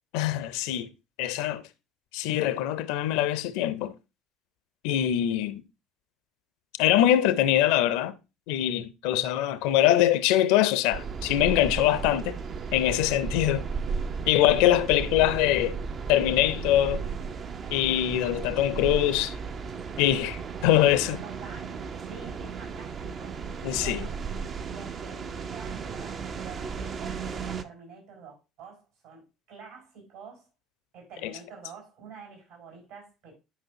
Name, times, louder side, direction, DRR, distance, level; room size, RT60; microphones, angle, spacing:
voice 1, 0.1-0.9 1.2-1.6 2.1-3.9 4.8-5.6 6.8-8.1 8.5-12.4 12.7-13.6 14.3-15.8 16.1-17.1 17.7-19.3 20.0-21.2 23.6-24.1 31.2-31.3, left 12 dB, 60° left, 0.5 m, -23 dB
sound 1, 10.9-27.6, right 5 dB, 40° right, 0.6 m, -35 dB
voice 2, 20.6-20.9 21.2-23.4 23.8-24.1 24.7-30.5 30.9-33.3, right 5 dB, 65° right, 4.8 m, -47 dB
10.0 x 5.1 x 2.7 m
figure-of-eight pair, 60°, 0 cm